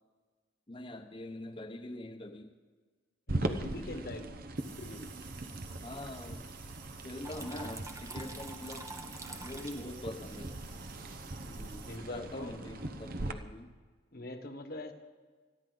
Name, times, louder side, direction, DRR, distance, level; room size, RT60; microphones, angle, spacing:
voice 1, 0.7-2.5 5.8-6.4 7.0-8.9 9.4-10.5 12.0-13.7, left 1 dB, 25° left, 5 dB, 0.9 m, -43 dB
voice 2, 3.3-4.3 4.8-5.1 11.4-12.5 14.1-14.9, left 2 dB, 50° left, 7 dB, 1.4 m, -43 dB
sound 1, 3.3-13.3, right 2 dB, 50° right, 0.9 m, -40 dB
sound 2, 4.6-12.0, right 6 dB, 70° right, 2.0 m, -53 dB
Water tap faucet / Trickle dribble, 7.2-12.2, right 2 dB, 15° right, 0.9 m, -48 dB
28.0 x 10.5 x 4.0 m, 1.4 s
head